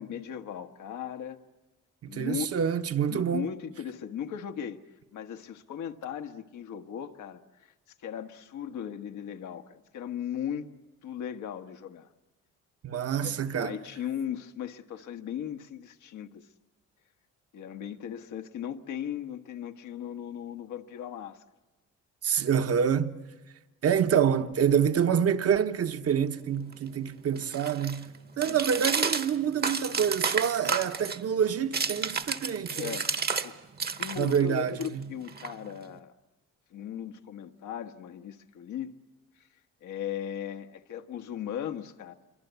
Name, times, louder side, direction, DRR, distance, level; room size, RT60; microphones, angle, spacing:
voice 1, 0.0-1.4 2.1-2.5 3.1-4.8 5.1-7.7 8.0-10.7 11.0-12.1 13.2-16.5 17.5-21.4 28.4-28.6 32.7-33.1 33.4-33.6 34.0-36.1 36.7-39.0 39.4-39.5 39.8-42.1, left 9 dB, 75° left, 1.4 m, -37 dB
voice 2, 2.0-3.5 12.8-13.8 22.2-23.2 23.8-28.1 28.4-33.0 34.2-35.0, right 8 dB, 55° right, 1.2 m, -27 dB
sound 1, 26.1-33.5 33.8-36.0, right 5 dB, 30° right, 1.1 m, -32 dB
27.0 x 24.0 x 8.2 m
cardioid pair, 90°, 30 cm